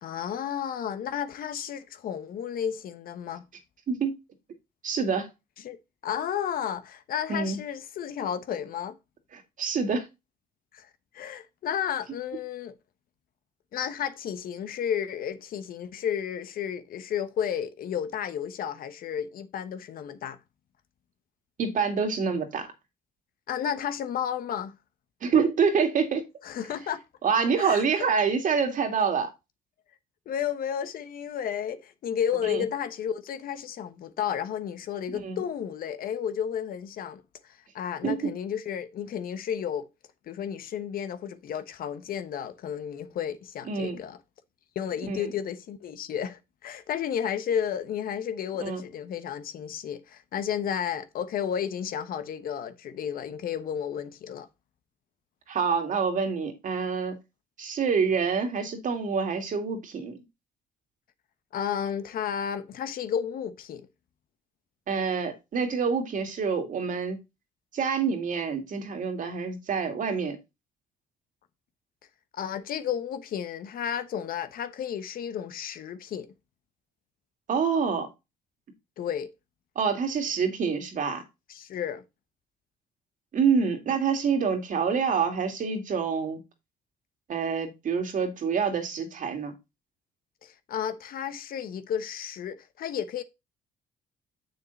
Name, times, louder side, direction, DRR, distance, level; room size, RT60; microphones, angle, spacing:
voice 1, 0.0-3.4 5.6-5.8 6.0-8.9 10.7-10.9 11.1-12.7 13.7-20.4 23.5-24.7 26.4-27.0 27.6-27.8 30.3-37.2 37.7-39.9 40.3-44.2 44.7-54.5 61.5-63.9 72.3-76.3 79.0-79.3 81.5-82.0 90.4-93.2, left 8 dB, 65° left, 1.1 m, -32 dB
voice 2, 4.8-5.3 7.3-7.6 9.3-10.1 21.6-22.7 25.2-26.3 27.2-29.3 32.4-32.6 35.2-35.4 38.0-38.2 43.7-44.0 45.1-45.2 48.6-48.8 55.5-57.2 57.6-60.2 64.9-67.2 67.7-70.4 77.5-78.1 79.8-81.2 83.3-86.4 87.3-89.5, right 5 dB, 55° right, 2.4 m, -26 dB
7.1 x 6.5 x 4.1 m
supercardioid pair, 75°, 16 cm